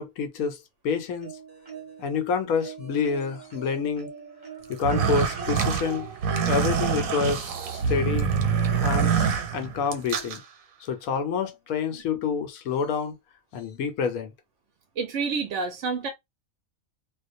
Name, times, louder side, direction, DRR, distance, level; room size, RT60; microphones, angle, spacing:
voice 1, 0.0-1.3 2.0-4.1 4.7-6.1 6.5-8.3 8.7-10.4 10.8-13.2 13.5-14.3, left 6 dB, 85° left, 1.1 m, -28 dB
sound 1, 1.2-2.2 2.6-8.3 9.5-9.6 10.0-10.1, right 5 dB, 35° right, 0.8 m, -42 dB
sound 2, 4.7-10.4, right 6 dB, 85° right, 1.0 m, -25 dB
voice 2, 15.0-16.1, right 4 dB, 65° right, 0.8 m, -29 dB
2.4 x 2.1 x 2.5 m
omnidirectional pair, 1.4 m